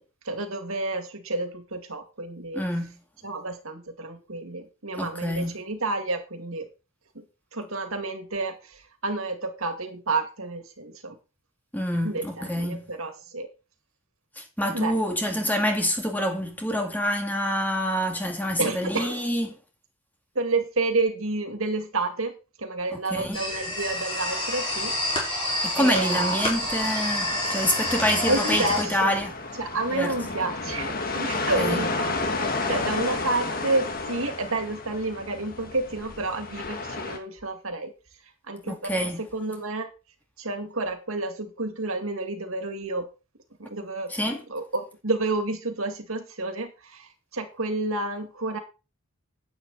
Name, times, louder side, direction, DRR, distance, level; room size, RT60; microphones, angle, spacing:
voice 1, 0.3-2.6 3.2-6.7 7.2-7.3 7.5-11.1 12.0-13.5 14.7-14.9 18.6-19.1 20.4-24.9 25.2-25.5 25.8-26.5 28.3-29.1 29.6-32.1 32.4-37.9 38.5-39.9 40.4-43.1 43.6-48.6, right 2 dB, 90° right, 2.3 m, -30 dB
voice 2, 2.5-3.0 5.0-5.6 11.7-12.9 14.4-19.5 22.9-23.4 25.6-29.3 29.9-30.1 31.3-31.9 38.7-39.2 44.1-44.4, equal, 10° left, 2.2 m, -27 dB
sound 1, 23.3-28.8, left 1 dB, 25° left, 4.7 m, -28 dB
sound 2, 26.1-37.2, left 3 dB, 45° left, 1.8 m, -32 dB
10.5 x 9.0 x 4.1 m
head